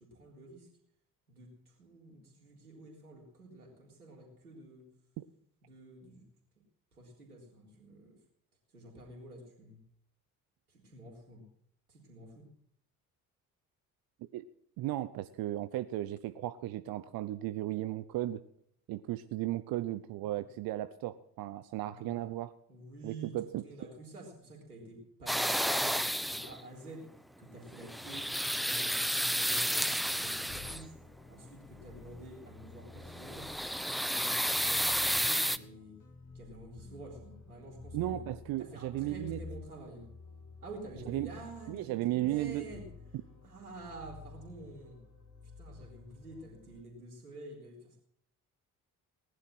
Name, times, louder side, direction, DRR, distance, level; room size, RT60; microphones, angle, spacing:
voice 1, 0.1-0.7 1.3-4.8 5.6-6.2 6.9-8.2 8.7-9.8 10.7-11.4 11.9-12.5 21.8-22.3 22.7-27.1 27.4-28.3 28.6-31.0 31.3-33.5 33.8-35.9 36.3-38.2 38.6-40.1 40.6-42.8 43.4-45.0 45.6-48.0, right 2 dB, 85° right, 0 dB, 3.9 m, -49 dB
voice 2, 14.8-18.4 18.9-22.5 23.0-23.6 37.9-39.5 41.1-41.3 41.7-42.7, right 15 dB, 55° right, 12 dB, 0.8 m, -35 dB
sound 1, 25.3-26.6 27.7-31.0 33.0-35.6, equal, ahead, 0.8 m, -31 dB
sound 2, 29.7-46.8, left 4 dB, 40° left, 4.6 m, -52 dB
19.0 x 11.0 x 6.2 m, 0.67 s
figure-of-eight pair, 45°, 44 cm